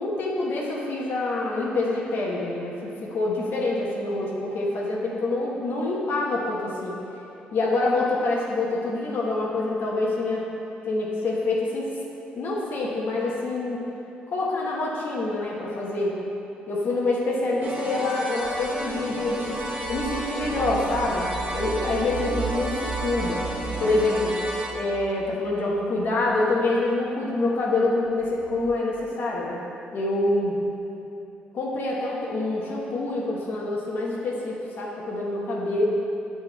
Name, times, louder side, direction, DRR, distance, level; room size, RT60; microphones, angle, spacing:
voice 1, 0.0-7.0 7.5-10.5 10.9-11.9 12.3-13.8 14.3-16.2 16.7-23.4 23.8-24.4 24.7-29.6 29.9-30.6 31.5-35.8, left 2 dB, 60° left, -4 dB, 1.1 m, -26 dB
sound 1, 17.6-24.7, right 1 dB, 40° right, 1.6 m, -32 dB
sound 2, 18.4-25.9 28.0-28.8, right 6 dB, 85° right, 0.5 m, -37 dB
7.6 x 4.4 x 4.5 m, 3.0 s
supercardioid pair, 60°, 4 cm